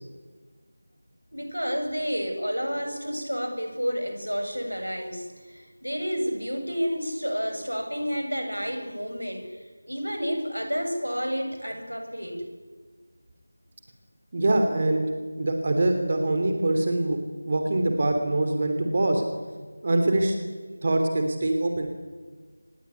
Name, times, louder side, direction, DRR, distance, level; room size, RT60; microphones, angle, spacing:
voice 1, 1.3-12.4, equal, 85° right, 5 dB, 7.5 m, -30 dB
voice 2, 14.3-15.0 15.4-17.2 17.5-19.2 19.8-20.3 20.8-21.9, right 2 dB, 30° right, 5 dB, 3.2 m, -24 dB
25.5 x 21.0 x 9.9 m, 1.5 s
figure-of-eight pair, 165°, 0 cm